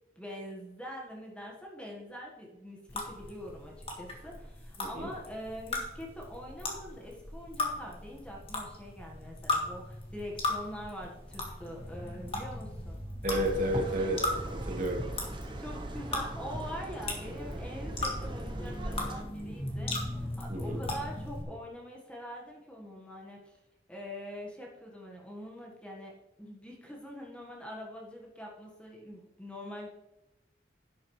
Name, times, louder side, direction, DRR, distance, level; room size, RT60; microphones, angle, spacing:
voice 1, 0.1-13.1 15.6-23.5 23.9-26.1 26.4-29.9, equal, 5° left, -2 dB, 1.5 m, -44 dB
sound 1, 2.9-21.4, left 2 dB, 30° left, 1.9 m, -38 dB
voice 2, 4.8-5.1 13.2-14.2 14.6-15.0 20.5-20.8, right 1 dB, 45° right, 1 dB, 1.5 m, -31 dB
sound 2, 13.3-19.2, right 1 dB, 25° right, 0.9 m, -39 dB
11.0 x 8.3 x 3.2 m, 0.95 s
head